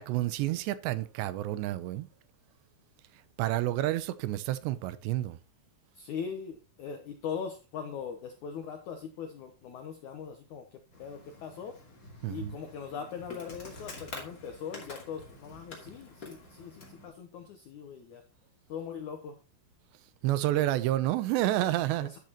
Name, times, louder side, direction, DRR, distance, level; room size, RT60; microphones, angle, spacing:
voice 1, 0.0-2.1 3.4-5.4 12.2-12.5 20.2-22.1, right 15 dB, 85° right, 2.9 m, -29 dB
voice 2, 5.9-10.6 11.0-11.7 12.3-18.2 18.7-19.4 22.0-22.2, left 7 dB, 85° left, 1.7 m, -40 dB
Insect, 10.9-17.1, left 2 dB, 30° left, 2.2 m, -47 dB
12.0 x 7.6 x 3.0 m
omnidirectional pair, 4.9 m